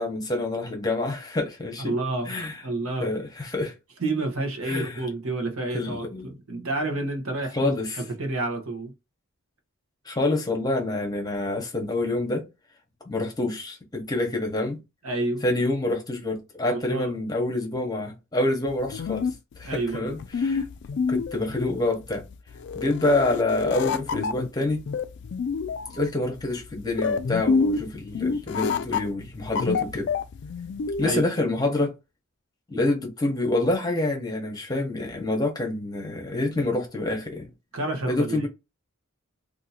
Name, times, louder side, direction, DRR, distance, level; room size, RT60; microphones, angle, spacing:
voice 1, 0.0-2.0 2.3-2.6 3.0-3.7 4.6-5.0 5.7-6.3 7.5-8.0 10.0-12.4 13.1-14.8 15.4-19.3 19.6-20.6 21.1-22.2 22.7-24.8 25.9-30.1 31.0-31.9 32.7-37.5 38.1-38.5, left 2 dB, 20° left, 1.0 m, -27 dB
voice 2, 1.8-3.1 4.0-8.9 15.0-15.4 16.7-17.1 19.6-20.1 31.0-31.2 37.7-38.5, right 2 dB, 75° right, 1.0 m, -29 dB
sound 1, 18.7-31.2, left 5 dB, 55° left, 0.3 m, -28 dB
2.7 x 2.6 x 4.1 m
head